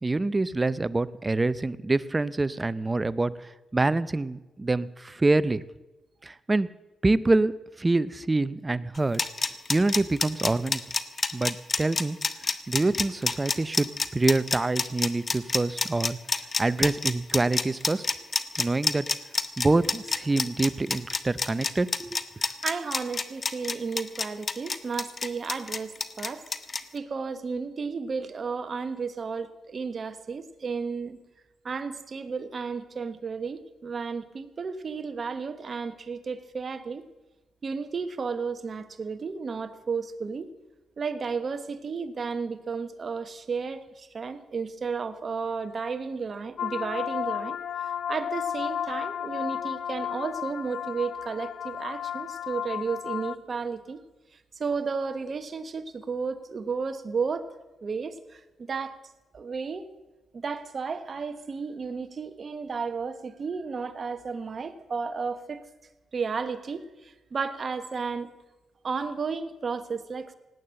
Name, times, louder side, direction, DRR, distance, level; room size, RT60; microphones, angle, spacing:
voice 1, 0.0-5.6 6.2-6.7 7.0-7.5 7.8-10.8 11.3-18.0 18.6-19.1 19.6-22.2, right 2 dB, 25° right, 17 dB, 0.6 m, -26 dB
sound 1, 9.0-26.8, left 4 dB, 40° left, 1.0 m, -28 dB
voice 2, 22.4-26.4 26.9-31.2 31.6-37.0 37.6-40.5 41.0-54.0 54.3-57.5 57.8-59.0 59.3-59.9 60.3-65.7 66.1-68.3 68.8-70.3, right 5 dB, 45° right, 10 dB, 1.2 m, -33 dB
sound 2, 46.6-53.4, left 9 dB, 70° left, 0.4 m, -33 dB
18.5 x 8.7 x 7.6 m, 1.1 s
cardioid pair, 75°, 0 cm